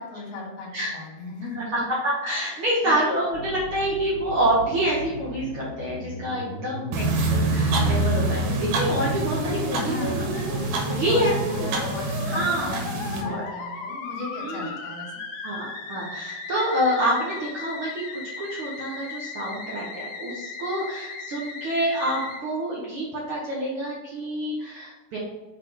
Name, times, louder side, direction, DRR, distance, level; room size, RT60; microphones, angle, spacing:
voice 1, 0.0-1.6 2.5-2.9 9.7-15.1, left 3 dB, 55° left, -4 dB, 2.6 m, -37 dB
voice 2, 1.5-10.4 11.0-11.7 12.2-12.8 13.2-13.4 14.4-14.7 15.4-18.0 18.4-25.2, right 1 dB, 55° right, -5 dB, 1.6 m, -27 dB
Musical instrument, 3.3-22.4, left 3 dB, 75° left, 2.3 m, -36 dB
sound 1, 6.9-13.2, right 2 dB, 85° right, 2.7 m, -26 dB
6.1 x 4.9 x 3.8 m, 1.1 s
omnidirectional pair, 3.8 m